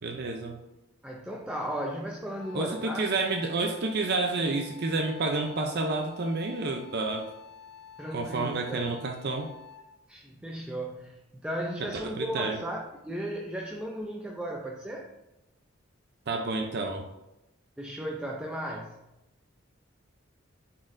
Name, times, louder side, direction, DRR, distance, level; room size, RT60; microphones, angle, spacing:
voice 1, 0.0-0.6 2.5-7.3 8.1-9.5 11.8-12.6 16.3-17.1, right 3 dB, 55° right, 3 dB, 0.5 m, -30 dB
voice 2, 1.0-3.1 8.0-8.9 10.1-15.1 17.8-19.0, equal, 5° right, -1 dB, 0.4 m, -35 dB
Wind instrument woodwind instrument, 2.4-10.0, left 7 dB, 65° left, 0.9 m, -49 dB
9.6 x 4.2 x 2.6 m, 0.93 s
head